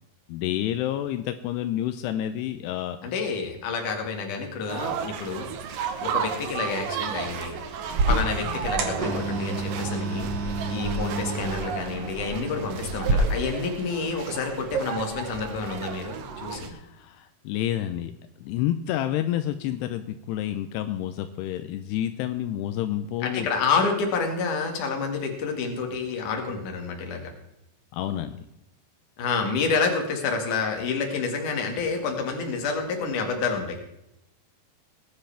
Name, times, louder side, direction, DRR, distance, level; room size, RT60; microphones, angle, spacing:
voice 1, 0.3-3.0 16.7-18.1 18.4-23.5 27.9-28.4, left 12 dB, 85° left, 9 dB, 2.7 m, -29 dB
voice 2, 3.0-5.5 6.0-7.6 8.1-16.7 23.2-27.3 29.2-33.8, left 4 dB, 55° left, 3 dB, 3.2 m, -29 dB
sound 1, 4.7-16.7, right 7 dB, 70° right, 2.5 m, -34 dB
sound 2, 7.9-13.1, right 2 dB, 55° right, 2.0 m, -29 dB
19.5 x 10.5 x 3.5 m, 0.84 s
omnidirectional pair, 4.7 m